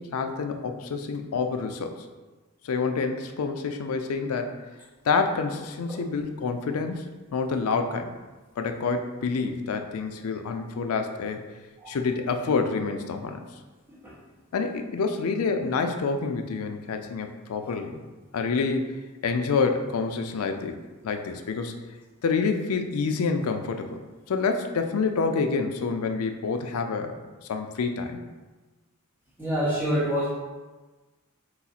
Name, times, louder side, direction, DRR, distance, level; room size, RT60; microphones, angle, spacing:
voice 1, 0.0-2.0 2.6-4.5 5.0-8.1 8.6-11.4 11.9-13.4 14.5-18.0 18.3-19.0 19.2-20.8 21.0-21.7 22.2-24.0 24.3-27.1 27.5-28.2, left 4 dB, 80° left, 5 dB, 0.4 m, -27 dB
voice 2, 29.4-30.3, equal, 10° right, -6 dB, 1.0 m, -26 dB
4.7 x 2.4 x 4.1 m, 1.2 s
head